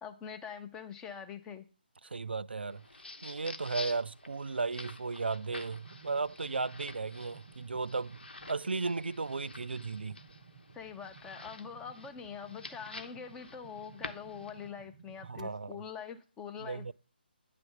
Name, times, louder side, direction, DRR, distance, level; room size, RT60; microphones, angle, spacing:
voice 1, 0.0-1.7 10.7-16.9, left 7 dB, 10° left, 0.6 m, -44 dB
voice 2, 2.0-2.8 3.2-10.2 15.2-15.8 16.6-16.9, right 4 dB, 75° right, 0.3 m, -35 dB
sound 1, 2.7-14.7, left 3 dB, 70° left, 1.0 m, -49 dB
sound 2, 5.4-15.4, right 6 dB, 45° right, 0.7 m, -57 dB
9.6 x 3.4 x 6.9 m
figure-of-eight pair, 145°, 6 cm